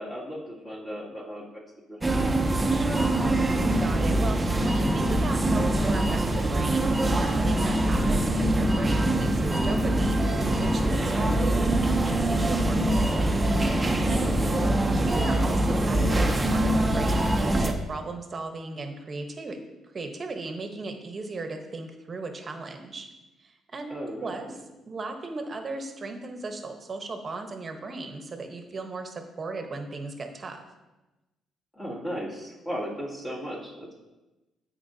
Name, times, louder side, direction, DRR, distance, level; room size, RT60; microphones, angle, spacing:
voice 1, 0.0-1.5 1.9-2.3 11.1-11.3 14.1-14.5 23.9-24.3 31.8-33.9, equal, 20° left, -6 dB, 2.4 m, -36 dB
sound 1, 2.0-17.7, right 1 dB, 15° right, 0.7 m, -24 dB
voice 2, 2.7-13.4 14.1-14.3 14.9-19.6 19.9-23.1 23.4-24.5 24.9-30.6, right 3 dB, 40° right, 5 dB, 1.0 m, -37 dB
13.5 x 4.4 x 2.8 m, 1.1 s
cardioid pair, 90°, 0 cm